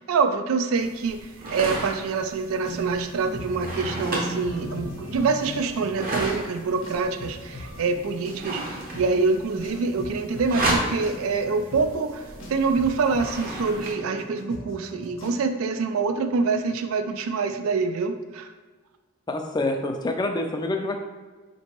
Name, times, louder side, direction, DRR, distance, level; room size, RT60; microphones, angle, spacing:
voice 1, 0.1-18.5, right 4 dB, 80° right, 9 dB, 0.4 m, -26 dB
sound 1, 0.8-13.9, right 1 dB, 45° right, 0.7 m, -34 dB
sound 2, 2.6-15.4, equal, 65° left, 0.8 m, -39 dB
voice 2, 19.3-21.0, left 2 dB, 20° left, 4 dB, 0.3 m, -27 dB
4.3 x 2.9 x 2.9 m, 1.3 s
head